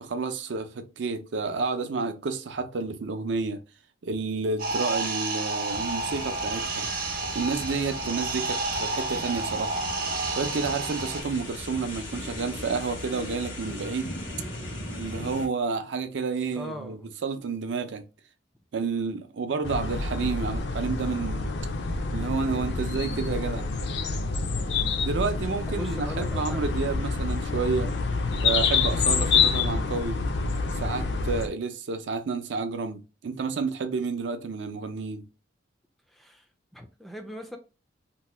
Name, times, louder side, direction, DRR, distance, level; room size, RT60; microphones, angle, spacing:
voice 1, 0.0-3.6 4.0-6.9 7.3-9.9 10.4-14.1 15.0-18.0 18.7-21.6 22.1-23.6 25.0-27.9 28.4-30.2 30.8-35.2, right 4 dB, 70° right, 0.4 m, -30 dB
sound 1, 4.6-11.2, right 3 dB, 50° right, 0.8 m, -30 dB
sound 2, 5.7-15.5, left 1 dB, 80° left, 1.1 m, -38 dB
voice 2, 16.5-17.1 25.7-26.6 36.1-36.4 36.7-37.6, equal, ahead, 0.3 m, -40 dB
sound 3, 19.6-31.5, left 4 dB, 65° left, 0.4 m, -27 dB
2.8 x 2.1 x 3.2 m
head